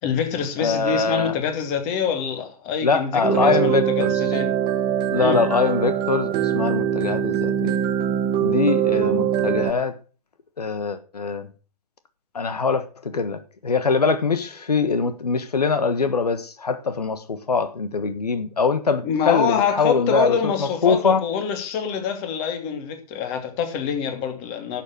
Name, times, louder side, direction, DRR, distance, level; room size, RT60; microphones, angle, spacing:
voice 1, 0.0-4.5 5.2-5.4 19.0-24.8, left 7 dB, 35° left, 2.7 m, -25 dB
voice 2, 0.6-1.4 2.8-4.4 5.1-7.8 8.4-10.0 10.6-11.5 12.3-21.2, left 4 dB, 85° left, 1.4 m, -23 dB
sound 1, 3.2-9.7, right 10 dB, 25° right, 1.4 m, -22 dB
11.5 x 7.6 x 6.2 m
hypercardioid pair, 130°, 20 cm